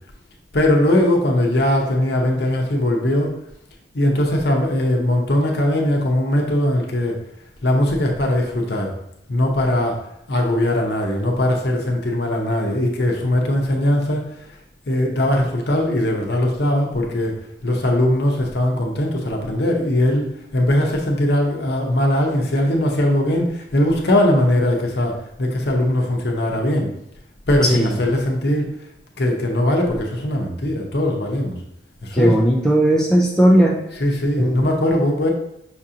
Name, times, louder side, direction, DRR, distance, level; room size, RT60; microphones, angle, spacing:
voice 1, 0.5-3.3 3.9-7.2 7.6-8.9 9.3-10.0 10.3-14.6 14.9-26.9 27.5-28.7 29.2-31.6 32.0-32.3 34.0-35.3, left 1 dB, 55° left, 0 dB, 0.7 m, -20 dB
voice 2, 32.1-33.8 34.4-34.7, right 1 dB, 5° left, -2 dB, 0.4 m, -16 dB
5.8 x 2.5 x 2.8 m, 0.79 s
head